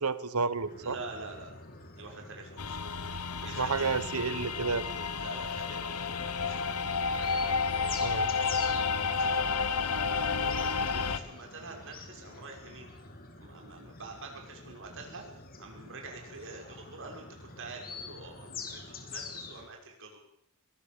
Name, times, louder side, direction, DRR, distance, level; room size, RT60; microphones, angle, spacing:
voice 1, 0.0-1.0 3.6-4.9 8.0-8.3, right 4 dB, 80° right, 16 dB, 1.2 m, -30 dB
sound 1, 0.7-19.7, left 4 dB, 45° left, 3.2 m, -47 dB
voice 2, 0.8-1.7 2.0-2.8 3.4-3.9 4.2-4.3 5.2-6.8 7.1-9.4 10.2-12.9 13.4-20.3, right 3 dB, 60° right, 2 dB, 5.9 m, -46 dB
sound 2, 2.6-11.2, left 5 dB, 90° left, 1.5 m, -31 dB
23.0 x 18.5 x 7.1 m, 0.69 s
head